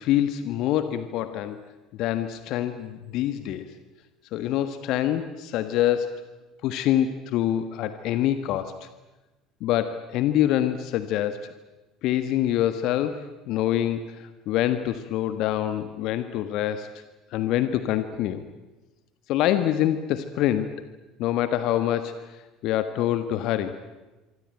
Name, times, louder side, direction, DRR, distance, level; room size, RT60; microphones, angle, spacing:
voice 1, 0.0-1.6 2.0-3.7 4.3-6.3 6.6-8.9 9.6-11.5 12.0-17.0 17.3-18.4 19.3-20.7 21.2-22.4 22.6-23.7, left 12 dB, 55° left, 11 dB, 1.5 m, -25 dB
26.5 x 24.5 x 9.0 m, 1.1 s
figure-of-eight pair, 65°, 0 cm